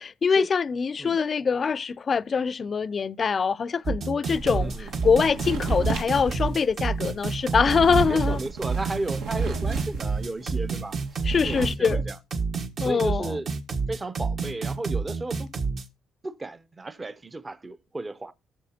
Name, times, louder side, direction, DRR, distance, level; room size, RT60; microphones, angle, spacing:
voice 1, 0.0-8.4 11.3-12.0 12.8-13.3, left 5 dB, 45° left, 0.4 m, -24 dB
sound 1, 3.8-15.8, right 4 dB, 55° right, 1.5 m, -29 dB
sound 2, 4.3-10.6 10.9-11.7, right 4 dB, 85° right, 1.6 m, -32 dB
voice 2, 4.5-4.9 8.1-12.2 12.8-13.5 13.9-15.5 16.2-18.3, right 2 dB, 25° right, 0.6 m, -34 dB
18.5 x 7.0 x 2.8 m
cardioid pair, 90°, 0 cm